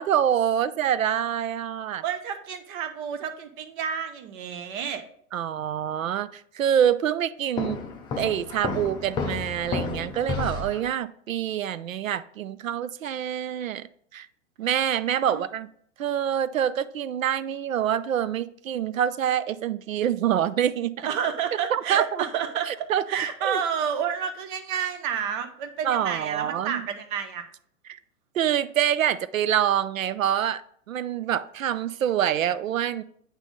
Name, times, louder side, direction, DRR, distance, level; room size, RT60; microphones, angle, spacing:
voice 1, 0.0-2.0 5.3-7.8 8.2-13.9 14.1-14.3 14.6-15.7 16.0-20.9 21.7-22.3 22.7-23.0 23.4-23.6 25.8-26.8 27.9-28.0 28.3-30.6 30.9-33.0, right 10 dB, 75° right, 0.5 m, -26 dB
voice 2, 2.0-5.0 15.3-15.5 21.0-27.4, right 8 dB, 40° right, 0.9 m, -30 dB
Walk footsteps, 7.6-10.9, left 5 dB, 10° left, 0.4 m, -31 dB
8.9 x 3.5 x 3.8 m
figure-of-eight pair, 105°, 40 cm